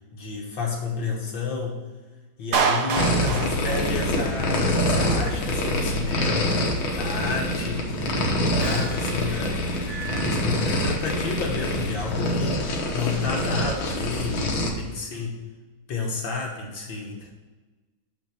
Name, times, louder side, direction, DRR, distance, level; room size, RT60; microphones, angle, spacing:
voice 1, 0.1-1.8 2.4-6.6 6.9-9.6 10.1-12.7 12.9-15.4 15.9-17.3, left 4 dB, 70° left, -1 dB, 2.0 m, -31 dB
Clapping, 2.5-4.6, right 5 dB, 60° right, 1.3 m, -26 dB
sound 1, 2.9-14.7, left 1 dB, 90° left, 2.1 m, -25 dB
sound 2, 8.4-11.4 11.7-12.2, right 2 dB, 20° left, 2.1 m, -39 dB
6.5 x 6.0 x 6.3 m, 1.3 s
omnidirectional pair, 2.2 m